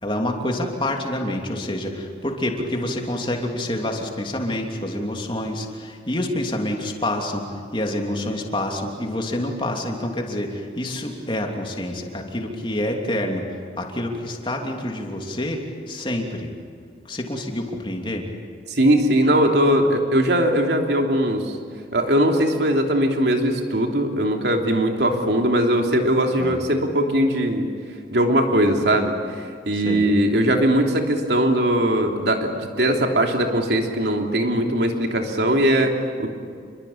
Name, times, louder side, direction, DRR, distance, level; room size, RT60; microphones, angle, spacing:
voice 1, 0.0-13.4 13.8-16.5 17.1-18.3 26.4-26.6 29.7-30.1, left 1 dB, 30° left, 2 dB, 3.1 m, -27 dB
voice 2, 18.7-21.5 21.9-27.7 28.1-36.3, right 1 dB, 65° right, 3 dB, 3.1 m, -20 dB
28.0 x 22.5 x 8.7 m, 2.3 s
head